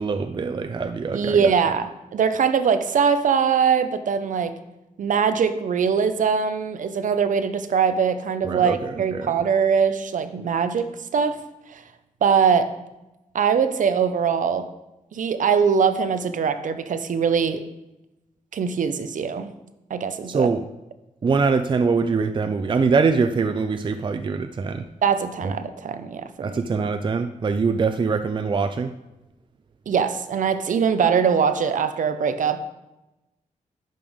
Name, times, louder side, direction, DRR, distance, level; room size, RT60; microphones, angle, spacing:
voice 1, 0.0-1.5 8.4-9.3 20.3-20.6 21.2-24.9 25.4-25.5 26.4-28.9, right 4 dB, 35° right, 9 dB, 0.4 m, -23 dB
voice 2, 1.1-4.5 5.0-11.4 11.7-11.8 12.2-12.7 13.3-14.7 15.1-17.6 18.5-19.5 19.9-20.5 25.0-26.6 29.9-32.6, right 6 dB, 70° right, 10 dB, 0.7 m, -22 dB
11.0 x 5.3 x 3.6 m, 0.97 s
cardioid pair, 80°, 14 cm